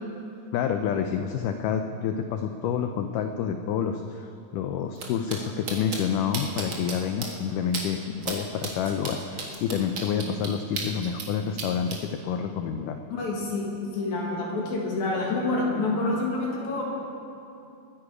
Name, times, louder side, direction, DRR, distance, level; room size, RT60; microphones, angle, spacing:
voice 1, 0.5-13.0, left 7 dB, 85° left, 7 dB, 1.8 m, -28 dB
sound 1, 5.0-5.1 5.3-5.4 5.7-6.0 6.3-6.9 7.2-7.3 7.7-7.8 8.2-8.4 8.6-11.3 11.6-12.0, right 4 dB, 50° right, 1.6 m, -33 dB
voice 2, 13.1-16.8, left 2 dB, 55° left, -3 dB, 2.9 m, -27 dB
22.5 x 9.6 x 5.0 m, 2.7 s
omnidirectional pair, 4.4 m